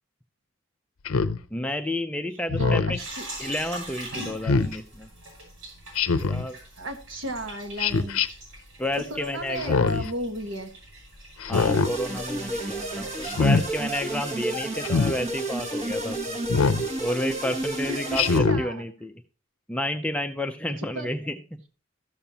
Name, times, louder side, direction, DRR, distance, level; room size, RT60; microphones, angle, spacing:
Speech synthesizer, 1.1-1.4 2.5-3.0 4.4-4.8 6.0-6.5 7.8-8.3 9.6-10.1 11.4-11.9 13.2-13.6 14.8-15.2 16.5-16.8 18.1-18.6, left 4 dB, 80° left, 0.6 m, -23 dB
voice 1, 1.5-3.0 3.4-5.1 6.2-6.6 8.8-10.1 11.5-16.4 17.0-19.1 19.7-21.6, left 1 dB, 5° left, 6 dB, 0.4 m, -31 dB
voice 2, 2.6-3.3 6.8-8.4 9.1-10.7 17.9-18.9 20.7-21.1, right 1 dB, 65° right, 5 dB, 1.4 m, -34 dB
sound 1, 3.0-14.1, right 1 dB, 90° right, 5.6 m, -43 dB
sound 2, 11.5-18.4, right 1 dB, 30° right, 1.2 m, -31 dB
13.5 x 7.1 x 2.8 m, 0.36 s
head